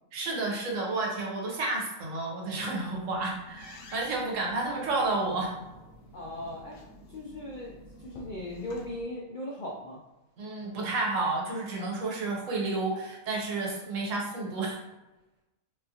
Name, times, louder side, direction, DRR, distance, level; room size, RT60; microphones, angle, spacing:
voice 1, 0.1-5.5 10.4-14.8, right 3 dB, 75° right, -1 dB, 1.1 m, -31 dB
sound 1, 2.5-9.0, left 1 dB, 80° left, 1.0 m, -51 dB
voice 2, 6.1-6.8 7.1-10.0, left 1 dB, 65° left, -3 dB, 0.5 m, -38 dB
3.7 x 2.4 x 2.8 m, 1.1 s
omnidirectional pair, 1.4 m